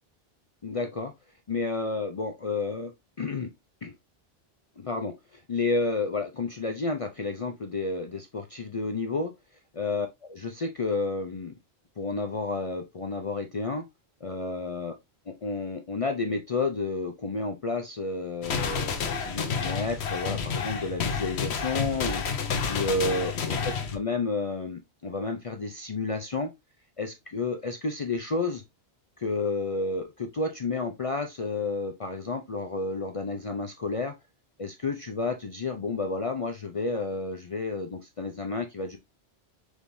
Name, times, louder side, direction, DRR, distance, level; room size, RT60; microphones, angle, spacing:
voice 1, 0.6-1.1 1.5-2.9 3.2-3.5 3.8-3.9 4.8-9.3 9.7-11.5 12.0-13.9 14.2-14.9 15.3-26.5 27.0-28.6 29.2-34.1 34.6-39.0, left 3 dB, 45° left, 0.5 m, -31 dB
sound 1, 18.4-24.0, left 6 dB, 80° left, 1.1 m, -30 dB
4.8 x 3.5 x 2.5 m
omnidirectional pair, 1.1 m